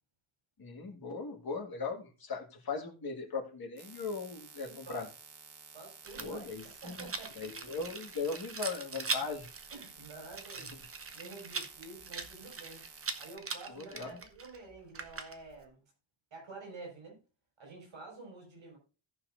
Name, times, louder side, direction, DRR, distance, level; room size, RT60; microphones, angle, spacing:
voice 1, 0.6-5.1 6.2-7.0 7.4-9.5 13.7-14.2, left 4 dB, 50° left, 2 dB, 1.8 m, -39 dB
sound 1, 3.8-13.4, right 6 dB, 55° right, 1.3 m, -53 dB
voice 2, 4.6-5.1 5.7-6.5 6.8-7.3 9.7-10.7 11.1-12.8 13.2-15.8 16.3-17.2 17.6-18.8, right 3 dB, 75° right, -1 dB, 5.6 m, -49 dB
Rattle, 6.0-15.6, right 4 dB, 30° right, 0.8 m, -42 dB
17.0 x 5.7 x 2.5 m, 0.34 s
wide cardioid pair, 170°, 47 cm